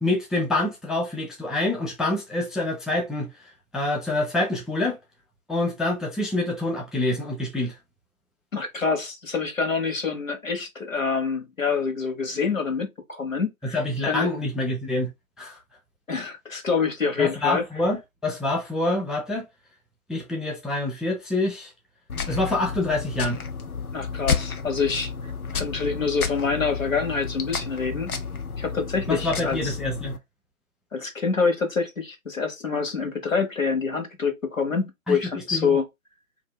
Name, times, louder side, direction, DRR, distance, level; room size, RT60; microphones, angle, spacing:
voice 1, 0.0-3.3 3.7-5.0 5.5-7.7 13.6-15.1 15.4-15.6 17.2-19.4 20.1-21.7 22.3-23.4 29.1-30.2 35.1-35.2 35.5-35.8, left 2 dB, ahead, 0.4 m, -26 dB
voice 2, 8.5-13.8 14.1-14.3 16.1-17.6 23.9-25.1 25.5-28.2 28.6-29.8 30.9-35.8, left 5 dB, 65° left, 1.1 m, -26 dB
sound 1, 22.1-30.2, left 5 dB, 85° left, 0.7 m, -31 dB
2.7 x 2.5 x 3.1 m
figure-of-eight pair, 160°, 43 cm